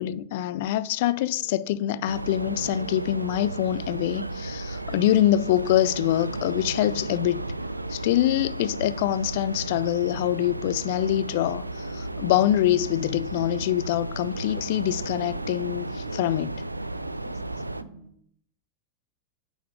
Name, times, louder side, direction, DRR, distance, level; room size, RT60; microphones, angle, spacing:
voice 1, 0.0-7.4 7.9-16.5, left 12 dB, 50° left, 0.3 m, -25 dB
sound 1, 1.2-18.1, right 2 dB, 45° right, 1.5 m, -48 dB
sound 2, 2.1-17.8, right 2 dB, 85° right, 0.3 m, -34 dB
8.4 x 3.9 x 5.0 m
figure-of-eight pair, 90°, 0 cm